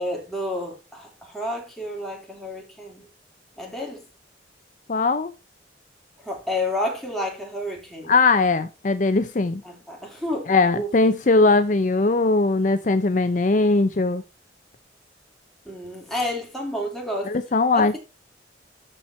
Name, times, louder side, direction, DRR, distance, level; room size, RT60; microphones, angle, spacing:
voice 1, 0.0-3.1 3.6-4.0 6.2-8.1 9.6-10.9 15.6-17.3 17.7-18.0, left 1 dB, ahead, 3.1 m, -30 dB
voice 2, 4.9-5.3 8.1-9.6 10.5-14.2 17.3-18.0, left 3 dB, 45° left, 0.6 m, -20 dB
13.0 x 4.4 x 4.3 m
head